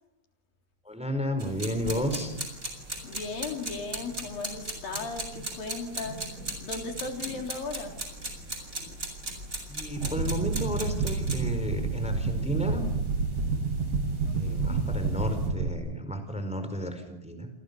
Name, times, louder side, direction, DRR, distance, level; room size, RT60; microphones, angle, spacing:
voice 1, 0.8-2.3 9.7-12.9 14.3-17.5, equal, ahead, 9 dB, 4.3 m, -32 dB
sound 1, 1.4-15.5, right 1 dB, 20° right, 7.1 m, -39 dB
voice 2, 3.0-8.0 8.9-9.0 14.2-14.8, left 4 dB, 60° left, 4 dB, 5.2 m, -37 dB
sound 2, 10.0-15.7, right 4 dB, 45° right, 3.1 m, -29 dB
29.5 x 27.5 x 7.0 m, 0.94 s
omnidirectional pair, 4.5 m